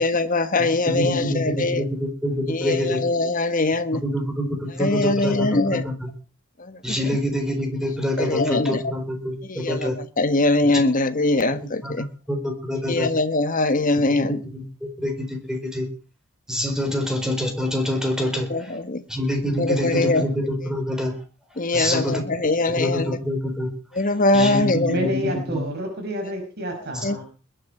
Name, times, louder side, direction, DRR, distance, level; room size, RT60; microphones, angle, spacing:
voice 1, 0.0-1.8 2.5-4.0 4.8-5.8 6.6-7.2 8.2-8.8 9.5-12.0 12.9-14.4 18.2-19.0 19.6-20.3 21.6-23.2 24.0-25.0 27.0-27.2, left 2 dB, 40° left, 10 dB, 1.4 m, -22 dB
voice 2, 0.6-3.0 3.9-6.1 6.8-10.0 11.8-13.1 14.2-15.9 16.5-18.7 19.1-21.1 21.7-22.2 22.7-23.7 24.3-25.6 26.9-27.0, left 1 dB, 5° right, 4 dB, 4.4 m, -26 dB
voice 3, 24.9-27.2, equal, 50° right, 3 dB, 5.7 m, -28 dB
21.0 x 10.5 x 4.7 m, 0.35 s
head